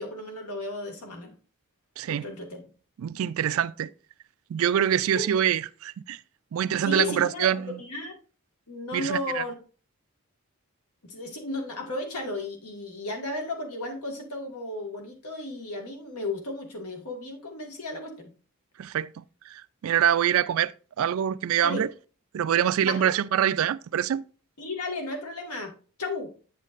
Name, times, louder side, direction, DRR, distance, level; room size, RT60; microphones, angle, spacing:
voice 1, 0.0-1.3 2.1-2.7 5.1-5.3 6.8-8.1 8.7-9.5 11.0-18.3 21.6-21.9 22.9-23.1 24.6-25.7 26.0-26.3, left 2 dB, 85° left, 1.8 m, -34 dB
voice 2, 3.0-3.9 4.5-6.2 6.5-7.8 8.9-9.4 18.8-20.7 21.0-21.9 22.3-24.2, right 9 dB, 65° right, 0.3 m, -25 dB
8.3 x 7.3 x 2.5 m
head